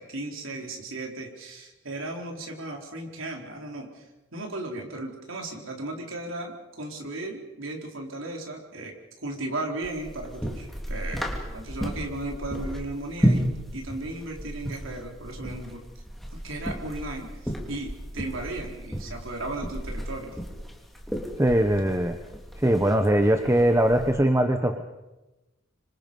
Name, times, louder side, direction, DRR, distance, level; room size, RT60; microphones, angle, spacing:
voice 1, 0.0-4.0 4.3-9.0 9.2-13.5 13.7-15.8 16.3-20.4, right 2 dB, 80° right, 1 dB, 4.3 m, -36 dB
sound 1, 9.8-24.1, equal, ahead, 3.5 m, -33 dB
voice 2, 21.4-22.2 22.6-24.8, right 1 dB, 15° right, 6 dB, 1.1 m, -21 dB
26.5 x 26.0 x 5.5 m, 1.0 s
head